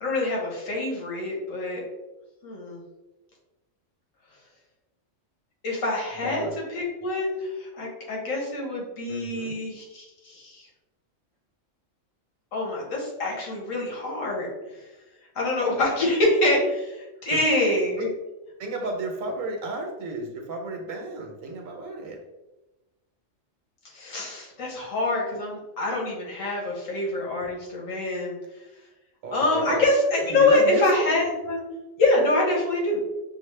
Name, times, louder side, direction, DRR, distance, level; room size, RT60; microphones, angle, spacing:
voice 1, 0.0-1.8 2.4-2.8 5.6-10.7 12.5-14.8 15.3-18.1 23.9-28.3 29.3-31.6 32.0-33.0, left 2 dB, 85° left, -2 dB, 1.5 m, -25 dB
voice 2, 6.2-6.6 9.1-9.6 17.2-17.4 18.0-18.1 18.6-22.2 27.4-27.5 29.2-29.8 30.3-31.0, right 2 dB, 90° right, 2 dB, 1.1 m, -32 dB
5.6 x 2.1 x 3.2 m, 1.0 s
omnidirectional pair, 1.3 m